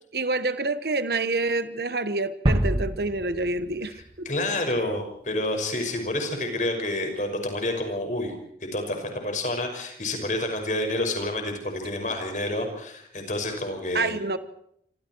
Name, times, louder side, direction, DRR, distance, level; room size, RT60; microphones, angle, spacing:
voice 1, 0.1-4.3 6.3-6.6 13.9-14.4, right 3 dB, 65° right, 12 dB, 1.2 m, -28 dB
sound 1, 2.5-4.3, right 1 dB, 30° right, 1.9 m, -26 dB
voice 2, 4.2-8.3 8.7-14.2, left 1 dB, 45° left, 4 dB, 5.8 m, -29 dB
27.0 x 26.0 x 4.6 m, 0.69 s
head